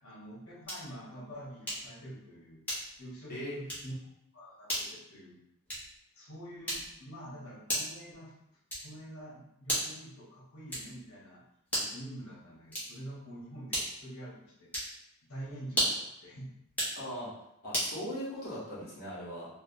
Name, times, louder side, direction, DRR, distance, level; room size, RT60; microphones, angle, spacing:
voice 1, 0.0-2.6 3.0-4.0 4.3-5.4 6.2-8.3 8.8-11.4 11.7-14.7 15.2-16.5, right 1 dB, 70° left, -4 dB, 0.8 m, -46 dB
sound 1, 0.6-1.0 1.7-2.0 2.6-3.1 3.6-3.9 4.6-4.9 5.6-6.0 6.6-7.1 7.7-8.0 8.7-9.0 9.6-10.1 10.7-11.0 11.6-12.0 12.7-13.1 13.7-14.1 14.7-15.0 15.7-16.1 16.7-17.0 17.7-18.0, equal, 5° left, 0.7 m, -34 dB
voice 2, 16.9-17.3 17.6-19.5, equal, 45° left, -8 dB, 0.9 m, -39 dB
2.7 x 2.1 x 2.6 m, 0.82 s
head